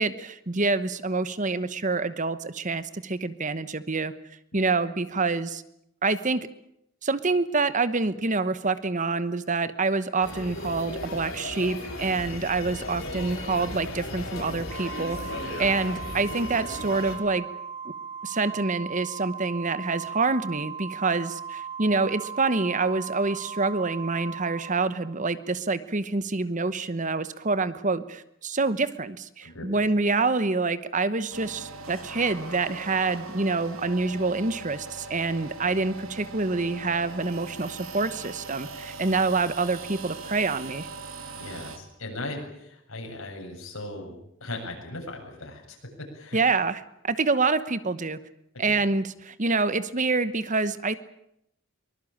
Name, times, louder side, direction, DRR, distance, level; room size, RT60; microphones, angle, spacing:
voice 1, 0.0-4.1 4.5-5.6 6.0-6.5 7.0-15.3 15.6-17.5 18.2-40.9 46.3-46.8 47.0-48.2 48.6-51.0, right 3 dB, 40° right, 14 dB, 1.1 m, -26 dB
sound 1, 10.2-17.2, left 2 dB, 70° left, 6.3 m, -36 dB
Organ, 14.7-25.4, right 6 dB, 20° right, 1.3 m, -38 dB
voice 2, 29.4-29.9 39.1-39.2 41.4-46.4 48.5-48.8, left 2 dB, 90° left, 2 dB, 7.6 m, -38 dB
sound 2, 31.3-41.8, right 3 dB, 85° right, 2.9 m, -40 dB
23.5 x 20.5 x 8.7 m, 0.78 s
head